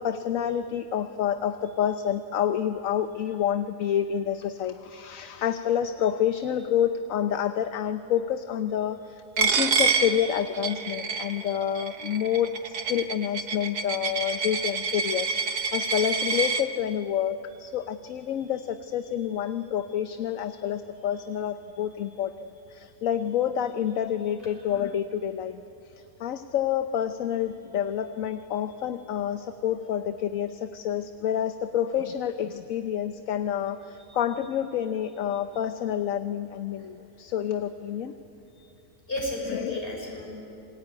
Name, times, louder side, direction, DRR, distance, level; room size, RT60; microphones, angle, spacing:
voice 1, 0.0-9.0 9.4-22.3 22.7-25.6 26.2-38.1 39.5-39.8, left 9 dB, 65° left, 10 dB, 1.1 m, -28 dB
Coin (dropping), 9.4-16.6, right 5 dB, 85° right, 1.8 m, -28 dB
voice 2, 39.1-40.3, left 1 dB, 35° left, -1 dB, 6.7 m, -33 dB
27.0 x 22.0 x 9.5 m, 2.8 s
omnidirectional pair, 1.7 m